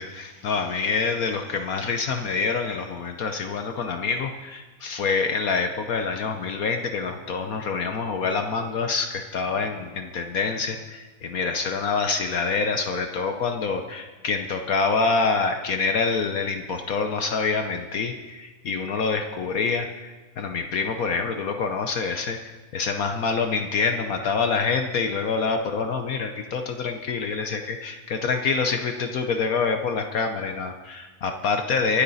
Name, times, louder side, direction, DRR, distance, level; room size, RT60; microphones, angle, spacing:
voice 1, 0.0-22.4 22.7-32.0, left 4 dB, 65° left, 6 dB, 1.2 m, -26 dB
25.0 x 8.9 x 4.1 m, 1.3 s
omnidirectional pair, 1.8 m